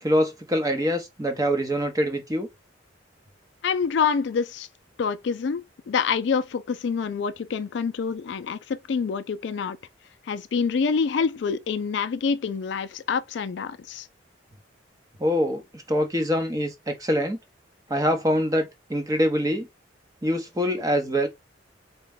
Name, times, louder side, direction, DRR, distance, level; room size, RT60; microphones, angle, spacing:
voice 1, 0.0-2.5 15.2-17.4 17.9-19.7 20.2-21.3, equal, 20° right, 0.7 m, -24 dB
voice 2, 3.6-4.7 5.0-5.6 5.9-9.8 10.3-14.1, left 6 dB, 65° left, 0.4 m, -26 dB
4.1 x 2.2 x 3.4 m
head